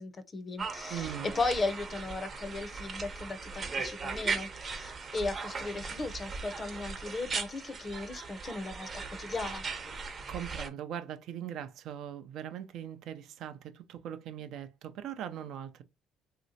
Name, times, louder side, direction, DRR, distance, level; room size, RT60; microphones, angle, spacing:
voice 1, 0.0-9.6, left 3 dB, 30° left, 0.6 m, -36 dB
sound 1, 0.6-10.7, right 4 dB, 35° right, 0.7 m, -38 dB
voice 2, 0.9-1.3 10.0-15.8, right 10 dB, 70° right, 0.4 m, -40 dB
3.2 x 2.8 x 2.6 m
cardioid pair, 115°, 0 cm